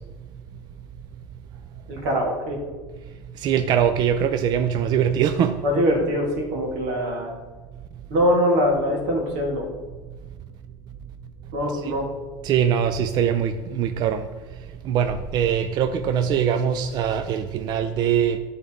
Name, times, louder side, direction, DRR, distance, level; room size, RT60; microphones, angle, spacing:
voice 1, 1.9-2.6 5.6-7.3 8.1-9.7 11.5-12.1, equal, 85° right, 0 dB, 1.9 m, -23 dB
voice 2, 3.4-5.6 11.7-11.9 12.4-14.3 14.8-18.4, right 8 dB, 45° right, 9 dB, 0.4 m, -22 dB
9.8 x 3.9 x 3.6 m, 1.3 s
supercardioid pair, 125°, 10 cm